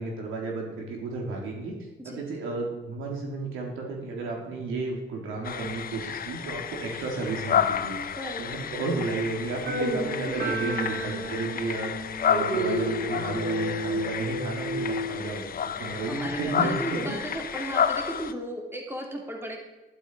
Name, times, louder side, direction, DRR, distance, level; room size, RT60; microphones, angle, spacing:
voice 1, 0.0-1.7 2.0-11.9 12.3-17.2, right 3 dB, 85° right, 0 dB, 3.6 m, -33 dB
sound 1, 5.4-18.3, left 8 dB, 50° left, 0.8 m, -31 dB
sound 2, 9.7-15.2, right 1 dB, 65° right, 3.7 m, -31 dB
voice 2, 10.3-10.8 15.8-19.6, right 1 dB, 10° right, 1 dB, 2.9 m, -35 dB
12.0 x 11.5 x 4.9 m, 1.1 s
cardioid pair, 90°, 20 cm